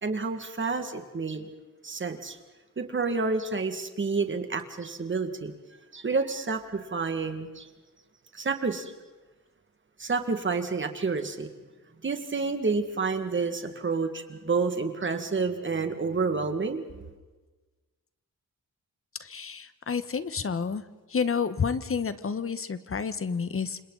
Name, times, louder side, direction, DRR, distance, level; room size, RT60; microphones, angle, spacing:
voice 1, 0.0-1.5 1.8-2.4 2.8-5.5 5.9-7.7 8.3-8.9 10.0-11.5 12.0-17.1, right 4 dB, 35° right, 7 dB, 2.0 m, -29 dB
voice 2, 19.2-20.8 21.1-23.8, left 6 dB, 40° left, 12 dB, 1.3 m, -30 dB
29.0 x 26.5 x 4.1 m, 1.2 s
wide cardioid pair, 155°, 33 cm